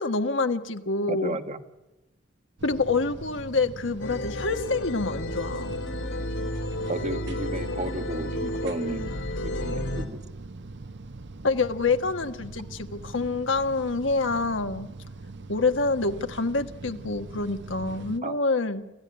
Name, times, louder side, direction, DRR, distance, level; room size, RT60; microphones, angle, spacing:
voice 1, 0.0-1.4 2.6-5.7 11.4-14.9 15.5-18.8, left 3 dB, 70° left, 7 dB, 1.4 m, -27 dB
voice 2, 1.1-1.6 6.9-10.2 18.2-18.4, right 1 dB, 35° right, 8 dB, 1.4 m, -33 dB
sound 1, 2.6-18.2, right 3 dB, 60° right, 0.9 m, -42 dB
sound 2, 4.0-10.1, left 1 dB, 90° left, 3.2 m, -32 dB
27.0 x 14.5 x 9.7 m, 1.0 s
head